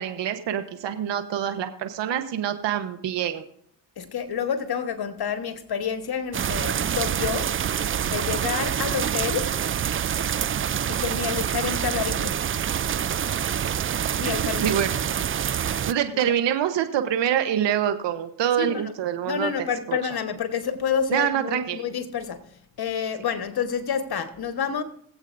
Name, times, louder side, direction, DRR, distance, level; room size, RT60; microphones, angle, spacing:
voice 1, 0.0-3.4 14.6-14.9 15.9-19.5 19.9-20.0 21.1-21.8, right 10 dB, 75° right, 1.1 m, -25 dB
voice 2, 4.0-7.5 8.1-9.5 10.9-12.4 14.2-14.7 16.2-16.3 18.6-18.9 19.3-22.5 22.8-24.8, left 7 dB, 60° left, 1.4 m, -28 dB
sound 1, 6.3-15.9, right 9 dB, 30° right, 0.4 m, -26 dB
22.0 x 8.1 x 2.6 m
supercardioid pair, 50°, 43 cm